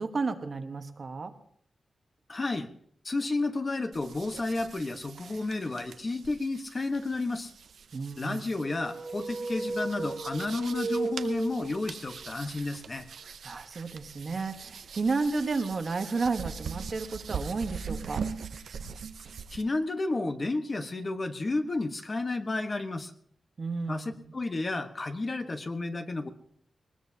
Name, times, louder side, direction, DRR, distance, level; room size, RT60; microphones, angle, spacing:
voice 1, 0.0-1.3 7.9-8.4 13.4-18.2 23.6-24.2, right 4 dB, 45° right, 7 dB, 1.2 m, -32 dB
voice 2, 2.3-2.7 3.0-7.5 8.2-13.0 19.5-23.1 23.9-26.3, left 2 dB, 35° left, 7 dB, 1.1 m, -31 dB
sound 1, 3.9-19.6, right 6 dB, 80° right, 0.7 m, -42 dB
sound 2, 8.6-12.2, right 3 dB, 65° right, 2.3 m, -35 dB
21.0 x 20.0 x 2.8 m, 0.63 s
wide cardioid pair, 120°, 0 cm